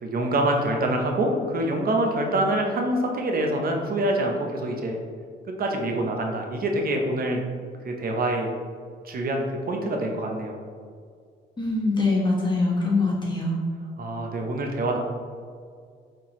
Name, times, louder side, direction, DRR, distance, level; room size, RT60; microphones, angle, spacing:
voice 1, 0.0-5.0 5.6-7.4 7.8-8.5 9.0-10.6 14.0-15.0, right 1 dB, 50° right, 2 dB, 0.8 m, -25 dB
voice 2, 11.6-13.6, left 3 dB, 20° left, -4 dB, 1.4 m, -23 dB
4.5 x 3.8 x 3.1 m, 2.1 s
cardioid pair, 90°, 20 cm